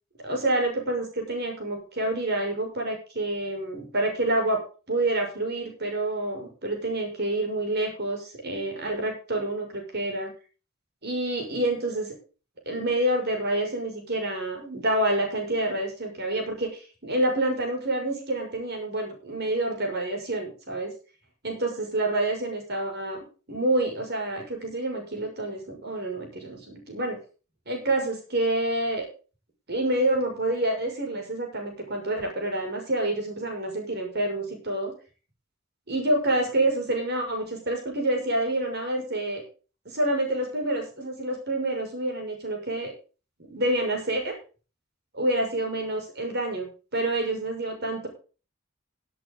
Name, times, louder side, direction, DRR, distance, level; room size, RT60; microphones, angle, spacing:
voice 1, 0.2-4.6 4.9-10.3 11.0-12.1 12.7-20.9 21.4-27.2 27.7-29.1 29.7-34.9 35.9-39.4 39.8-42.9 43.5-44.3 45.1-48.1, right 1 dB, 50° right, 2 dB, 6.0 m, -28 dB
17.5 x 8.8 x 3.8 m, 0.35 s
head